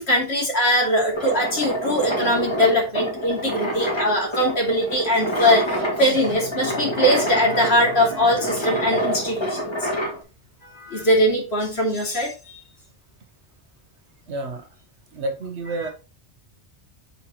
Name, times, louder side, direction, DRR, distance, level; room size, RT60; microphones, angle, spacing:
voice 1, 0.0-9.9 10.6-12.5 15.8-15.9, equal, 65° left, 2.8 m, -21 dB
sound 1, 1.1-10.2, equal, 25° left, 2.2 m, -27 dB
voice 2, 14.3-14.7 15.1-15.9, right 2 dB, 85° right, 1.3 m, -30 dB
8.0 x 5.7 x 3.0 m
omnidirectional pair, 1.1 m